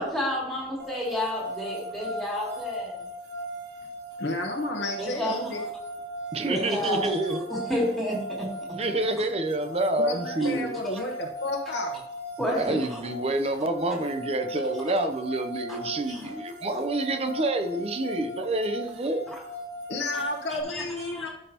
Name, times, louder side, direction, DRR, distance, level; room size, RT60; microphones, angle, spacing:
voice 1, 0.0-3.0 5.0-5.6 6.4-7.2 7.5-8.5 10.4-10.6 12.4-13.0 15.7-15.8 16.1-16.3 16.7-16.8 20.7-21.3, equal, ahead, -5 dB, 2.6 m, -30 dB
sound 1, 0.8-20.6, equal, 75° right, 1.2 m, -38 dB
voice 2, 4.2-5.7 9.9-12.0 19.9-21.3, left 2 dB, 80° left, 0 dB, 1.0 m, -32 dB
voice 3, 6.3-7.4 8.8-10.7 12.5-19.3, right 2 dB, 35° right, 7 dB, 0.6 m, -28 dB
12.5 x 5.4 x 2.9 m, 0.84 s
head